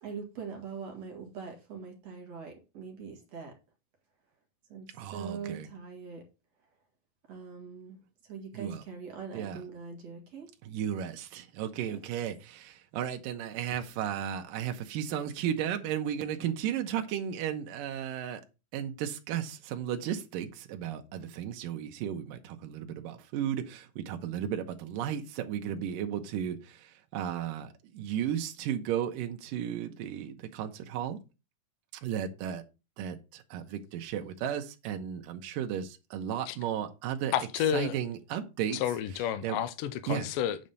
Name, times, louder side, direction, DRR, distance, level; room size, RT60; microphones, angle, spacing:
voice 1, 0.0-3.6 4.7-6.3 7.3-10.5 11.8-12.0 13.7-13.8, right 6 dB, 50° right, 2.8 m, -42 dB
voice 2, 4.9-5.7 8.5-8.8 9.3-9.6 10.7-18.4 18.7-31.2 32.0-32.6 33.0-37.3 37.7-38.8 39.4-39.6 40.1-40.3, right 9 dB, 80° right, 2.6 m, -34 dB
voice 3, 37.3-38.0 38.7-40.6, left 10 dB, 80° left, 2.4 m, -30 dB
9.2 x 4.2 x 6.7 m
omnidirectional pair, 3.9 m